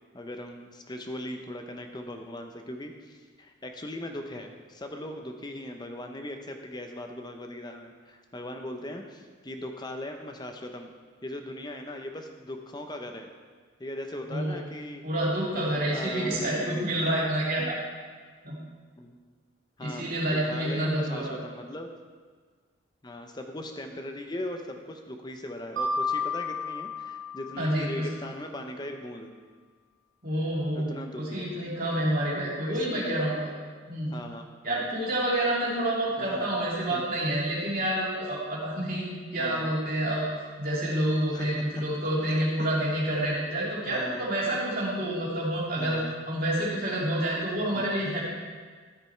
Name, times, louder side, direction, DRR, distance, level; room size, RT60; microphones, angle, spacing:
voice 1, 0.1-10.9 11.2-13.3 13.8-15.0 15.5-17.0 17.6-17.8 19.0-19.2 19.8-21.9 23.0-29.3 30.7-31.5 32.6-33.2 34.1-34.9 36.2-36.6 36.9-37.0 39.4-39.7 41.3-41.5 42.3-42.7 43.9-44.2 45.8-46.1 47.7-47.9, left 1 dB, 20° left, 4 dB, 0.7 m, -39 dB
voice 2, 15.0-17.8 18.4-18.6 19.8-21.3 27.6-28.1 30.2-33.5 33.9-34.1 34.6-40.3 40.6-46.0 46.3-48.2, right 1 dB, 45° right, -6 dB, 2.6 m, -28 dB
Mallet percussion, 25.8-28.5, left 3 dB, 80° right, 1.4 m, -33 dB
13.0 x 5.1 x 4.5 m, 1.5 s
head